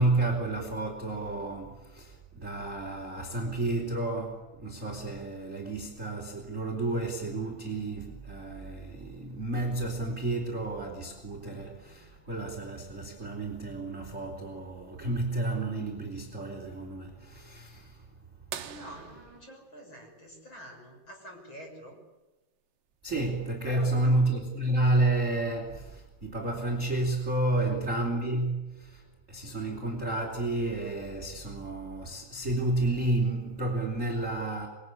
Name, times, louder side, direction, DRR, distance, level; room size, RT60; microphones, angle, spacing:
voice 1, 0.0-18.0 23.0-34.7, right 2 dB, 20° right, 2.9 m, -31 dB
sound 1, 18.5-21.0 22.9-23.0 25.2-25.3 27.0-27.3 28.1-28.2, right 10 dB, 60° right, 2.3 m, -44 dB
voice 2, 18.6-22.0 23.6-24.2 27.5-27.8, equal, 25° left, 6.8 m, -46 dB
27.5 x 22.0 x 9.8 m
omnidirectional pair, 6.0 m